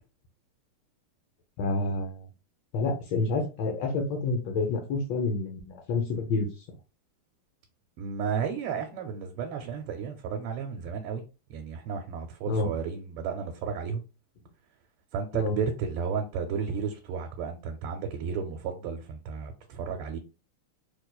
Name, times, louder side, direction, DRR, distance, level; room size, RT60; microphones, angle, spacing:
voice 1, 1.6-2.3 2.7-6.5 12.5-12.7 15.3-15.6, left 3 dB, 70° left, 1.3 m, -28 dB
voice 2, 8.0-11.2 11.5-14.0 15.1-20.2, right 6 dB, 85° right, 1.5 m, -33 dB
3.2 x 3.0 x 2.2 m
omnidirectional pair, 2.3 m